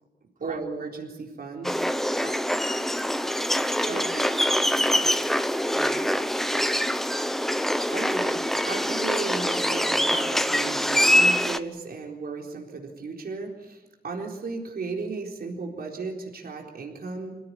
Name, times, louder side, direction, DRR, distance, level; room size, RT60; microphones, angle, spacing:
voice 1, 0.4-1.8 3.9-4.0 7.8-17.4, right 4 dB, 70° right, 1 dB, 4.1 m, -35 dB
sound 1, 1.6-11.6, equal, ahead, 1.0 m, -24 dB
voice 2, 3.9-5.3 5.7-6.1, right 4 dB, 55° right, 3 dB, 3.9 m, -41 dB
27.5 x 16.5 x 9.8 m, 1.1 s
wide cardioid pair, 135°, 16 cm